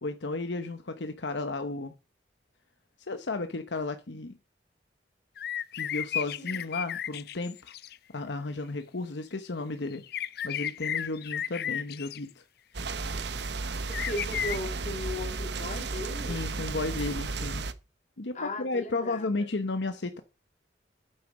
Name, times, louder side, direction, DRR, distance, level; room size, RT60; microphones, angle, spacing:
voice 1, 0.0-1.9 3.1-4.4 5.7-7.7 8.1-10.0 10.4-12.4 16.3-17.7 18.2-20.2, left 3 dB, 75° left, 1.0 m, -33 dB
sound 1, 5.4-8.0 9.9-12.2 13.9-14.6, left 10 dB, 60° left, 0.5 m, -33 dB
sound 2, 12.7-17.7, right 3 dB, 65° right, 1.0 m, -34 dB
voice 2, 13.9-16.4 18.3-19.5, left 1 dB, 40° left, 2.9 m, -37 dB
9.0 x 7.9 x 5.1 m
head